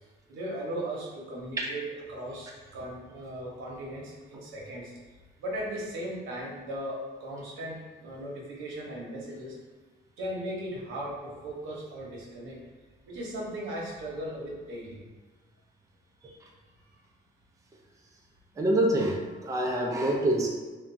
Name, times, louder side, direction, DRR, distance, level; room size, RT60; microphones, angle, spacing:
voice 1, 0.3-1.8 2.1-4.9 5.4-7.8 8.0-9.5 10.2-12.6 13.1-15.0 16.2-16.4, right 1 dB, 85° right, -4 dB, 0.8 m, -37 dB
voice 2, 18.6-20.5, right 1 dB, 15° right, -1 dB, 0.4 m, -26 dB
2.9 x 2.2 x 2.6 m, 1.3 s
cardioid pair, 90°, 20 cm